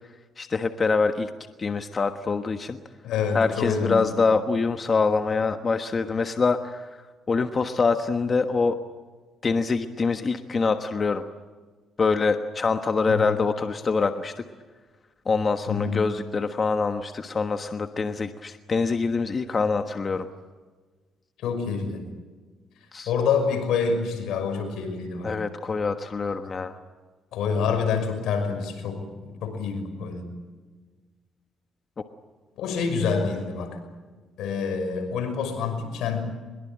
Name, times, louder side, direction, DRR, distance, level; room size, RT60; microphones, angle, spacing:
voice 1, 0.4-1.3 1.6-2.8 3.3-8.8 9.4-11.2 12.0-14.4 15.2-20.3 22.9-23.1 25.2-26.8, left 4 dB, 35° left, 7 dB, 1.3 m, -25 dB
voice 2, 3.0-4.1 13.1-13.4 15.7-16.0 21.4-22.0 23.1-25.3 27.3-30.3 32.6-33.8 34.4-36.2, left 5 dB, 85° left, 6 dB, 5.9 m, -27 dB
23.0 x 22.0 x 9.0 m, 1.4 s
cardioid pair, 90°, 0 cm